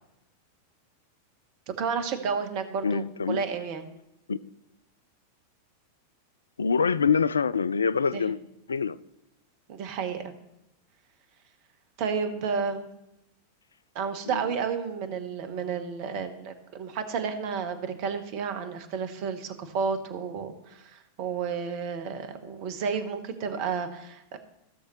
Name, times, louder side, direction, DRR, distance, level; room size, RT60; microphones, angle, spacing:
voice 1, 1.8-3.8 8.1-8.3 9.7-10.3 12.0-12.9 13.9-24.4, right 6 dB, 45° right, 1.1 m, -31 dB
voice 2, 2.8-3.4 4.3-4.4 6.6-8.4 8.7-9.0 14.3-14.5, left 5 dB, 75° left, 0.3 m, -25 dB
16.0 x 6.6 x 3.1 m
figure-of-eight pair, 90°, 0 cm